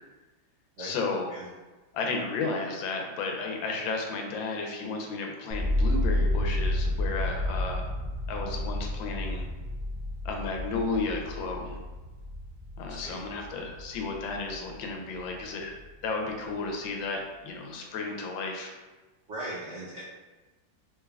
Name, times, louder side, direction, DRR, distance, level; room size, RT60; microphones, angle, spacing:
voice 1, 0.8-1.3 1.9-7.8 8.3-9.4 10.2-11.8 12.8-15.7 16.0-18.7, left 3 dB, 90° left, 2 dB, 1.4 m, -33 dB
sound 1, 5.5-15.5 15.8-16.5, left 1 dB, 30° right, 1.2 m, -31 dB
voice 2, 12.9-13.2 19.3-20.0, right 1 dB, 80° right, -7 dB, 0.6 m, -38 dB
3.6 x 3.3 x 2.2 m, 1.2 s
omnidirectional pair, 2.0 m